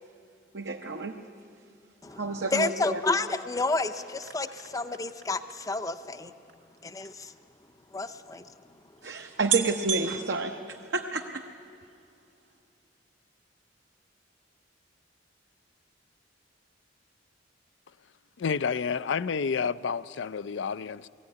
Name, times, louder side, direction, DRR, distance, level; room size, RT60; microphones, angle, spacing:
voice 1, 0.5-1.2 2.1-3.0 9.0-11.4, right 3 dB, 65° right, 0.9 m, -30 dB
voice 2, 2.0-6.3 6.8-7.3 7.9-8.5, left 3 dB, 20° left, 0.6 m, -30 dB
sound 1, 3.6-7.2 8.0-8.1 8.3-8.4 9.0-9.1 9.5-11.4 11.8-12.2 12.5-12.6, right 10 dB, 80° right, 2.1 m, -35 dB
voice 3, 18.4-21.1, left 6 dB, 75° left, 0.4 m, -30 dB
20.0 x 15.0 x 9.7 m
head